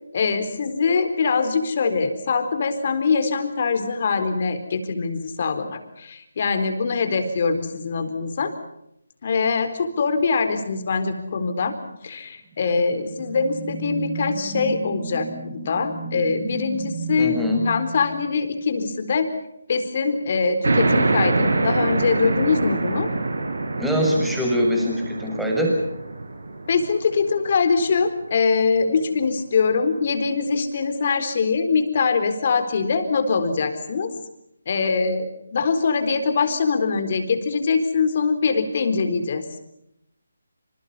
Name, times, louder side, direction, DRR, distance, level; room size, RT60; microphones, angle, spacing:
voice 1, 0.1-8.5 9.2-11.7 12.0-17.4 17.6-19.3 19.7-23.1 26.7-34.2 34.7-39.4, left 5 dB, 45° left, 9 dB, 4.1 m, -23 dB
sound 1, 12.5-19.0, right 3 dB, 25° right, 6.4 m, -34 dB
voice 2, 17.2-17.6 23.8-25.8, equal, ahead, 0 dB, 6.9 m, -23 dB
sound 2, 20.6-27.8, right 3 dB, 65° right, 5.0 m, -25 dB
28.0 x 27.5 x 5.7 m, 0.78 s
figure-of-eight pair, 150°, 0 cm